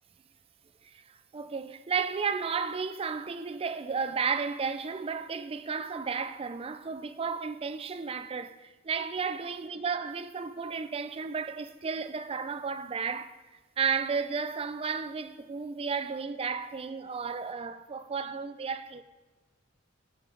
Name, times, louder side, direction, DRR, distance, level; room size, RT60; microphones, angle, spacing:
voice 1, 1.3-13.3 13.8-19.0, right 5 dB, 30° right, 0.4 m, -33 dB
11.5 x 5.6 x 3.9 m
head